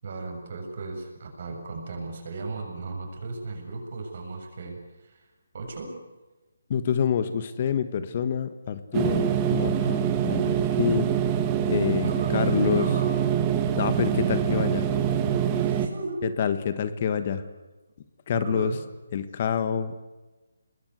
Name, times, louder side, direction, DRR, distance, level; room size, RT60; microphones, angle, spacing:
voice 1, 0.0-5.3 5.5-6.0 12.0-13.1 15.5-16.3 18.3-18.8, right 3 dB, 50° right, 3 dB, 7.5 m, -35 dB
voice 2, 6.7-9.3 9.5-11.3 11.7-12.9 13.7-14.9 16.2-17.4 18.3-18.7 19.1-20.2, left 7 dB, 40° left, 11 dB, 1.5 m, -27 dB
sound 1, 8.9-15.9, right 9 dB, 20° right, 1.9 m, -25 dB
27.0 x 20.5 x 8.2 m, 1.1 s
figure-of-eight pair, 155°, 0 cm